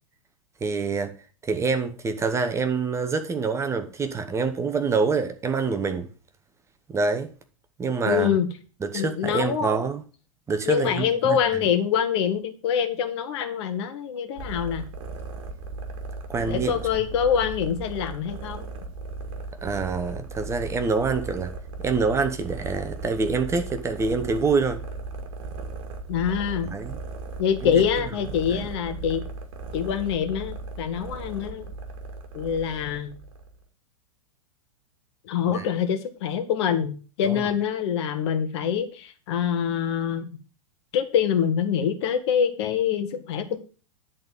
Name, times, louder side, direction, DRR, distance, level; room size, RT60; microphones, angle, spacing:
voice 1, 0.6-1.2 1.4-6.1 6.9-7.3 7.8-8.3 8.8-10.0 10.5-11.4 16.3-16.7 19.6-21.5 21.8-24.8 26.6-27.0 27.7-27.9 28.5-28.6 35.5-35.6 37.2-37.5, right 4 dB, 15° right, 1.0 m, -26 dB
voice 2, 8.1-8.5 8.9-9.8 10.7-14.8 16.5-18.7 26.1-26.7 27.4-29.2 29.7-31.7 32.3-33.1 35.2-40.3 40.9-43.6, left 8 dB, 50° left, 1.6 m, -25 dB
sound 1, 14.4-33.6, right 3 dB, 45° right, 2.1 m, -37 dB
10.5 x 4.2 x 7.3 m
figure-of-eight pair, 100°, 18 cm